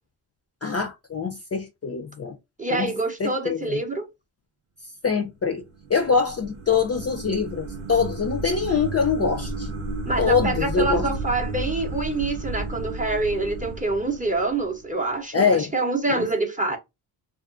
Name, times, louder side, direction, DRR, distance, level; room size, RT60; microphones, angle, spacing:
voice 1, 0.6-2.3 2.7-2.9 3.2-3.8 5.0-5.6 5.9-9.7 10.2-11.1 15.3-15.7 16.1-16.3, left 5 dB, 30° left, 0.4 m, -24 dB
voice 2, 2.6-4.1 10.0-16.8, right 2 dB, 15° right, 0.6 m, -26 dB
sound 1, 5.6-14.9, right 2 dB, 85° right, 0.9 m, -32 dB
2.5 x 2.3 x 2.4 m
cardioid pair, 60°, 49 cm